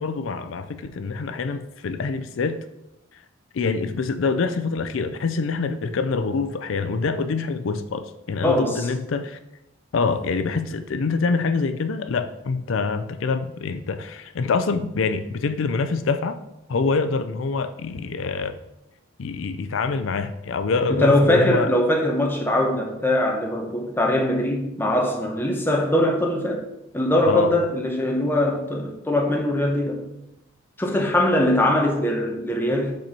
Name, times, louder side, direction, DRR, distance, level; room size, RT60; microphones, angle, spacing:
voice 1, 0.0-2.6 3.5-9.4 9.9-16.4 16.7-18.6 19.2-21.7 27.3-27.5, left 4 dB, 75° left, 0.4 m, -25 dB
voice 2, 8.4-8.9 20.9-26.6 26.9-30.0 30.8-32.9, left 1 dB, 10° left, 0.9 m, -21 dB
5.3 x 4.3 x 5.3 m
head